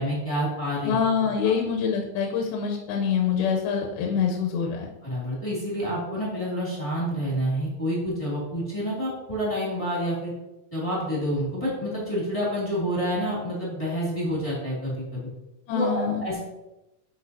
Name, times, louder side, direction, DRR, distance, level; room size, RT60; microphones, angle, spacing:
voice 1, 0.0-1.0 1.4-1.5 5.0-10.3 10.7-15.2 15.7-16.4, equal, 15° left, -7 dB, 1.4 m, -28 dB
voice 2, 0.8-4.9 15.7-16.2, left 6 dB, 85° left, 0 dB, 2.6 m, -25 dB
11.5 x 4.7 x 2.8 m, 0.98 s
omnidirectional pair, 4.4 m